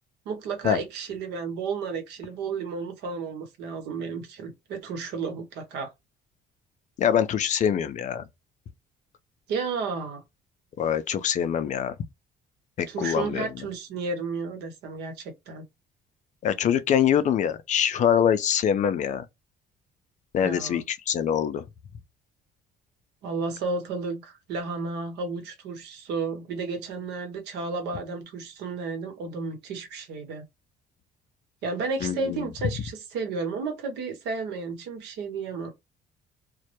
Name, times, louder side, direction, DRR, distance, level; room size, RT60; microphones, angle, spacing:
voice 1, 0.2-5.9 9.5-10.2 12.9-15.6 20.4-20.8 23.2-30.4 31.6-35.7, right 4 dB, 85° right, 0.9 m, -32 dB
voice 2, 7.0-8.2 10.8-11.9 12.8-13.5 16.4-19.2 20.3-21.6 32.0-32.4, left 9 dB, 45° left, 0.4 m, -24 dB
2.1 x 2.0 x 2.8 m
cardioid pair, 110°, 17 cm